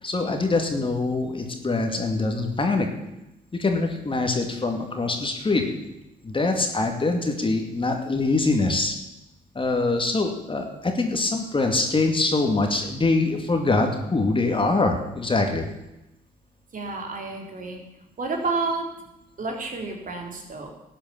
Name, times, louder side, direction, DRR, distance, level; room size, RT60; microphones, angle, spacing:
voice 1, 0.0-2.9 3.6-5.7 6.2-9.0 9.5-15.6, left 3 dB, 25° left, 4 dB, 2.4 m, -24 dB
voice 2, 16.7-17.8 18.2-18.9 19.4-20.7, right 3 dB, 45° right, 2 dB, 3.5 m, -30 dB
13.0 x 8.8 x 7.1 m, 0.92 s
supercardioid pair, 65°, 19 cm